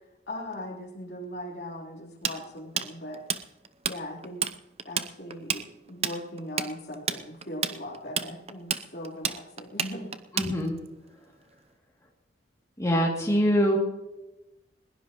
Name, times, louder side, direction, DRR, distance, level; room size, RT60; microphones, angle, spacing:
voice 1, 0.3-3.2 3.9-4.5 4.9-10.2, left 1 dB, 60° left, -1 dB, 3.7 m, -39 dB
Tools, 2.2-4.0 4.2-4.5 4.8-10.9, right 7 dB, 35° right, 0.7 m, -29 dB
voice 2, 10.3-10.8 12.8-13.8, equal, 15° left, -2 dB, 2.6 m, -24 dB
20.5 x 20.5 x 3.1 m, 0.98 s
head